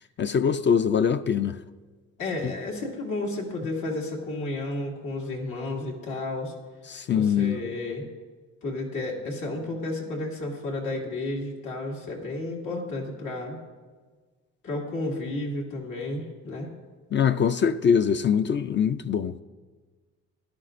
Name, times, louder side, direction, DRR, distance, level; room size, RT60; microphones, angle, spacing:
voice 1, 0.2-1.6 2.4-2.5 6.9-7.6 17.1-19.4, left 7 dB, 40° left, 0.4 m, -23 dB
voice 2, 2.2-6.5 7.1-8.1 8.6-13.6 14.6-16.7, left 2 dB, 85° left, 2.3 m, -32 dB
16.0 x 11.5 x 2.5 m
cardioid pair, 90°, 30 cm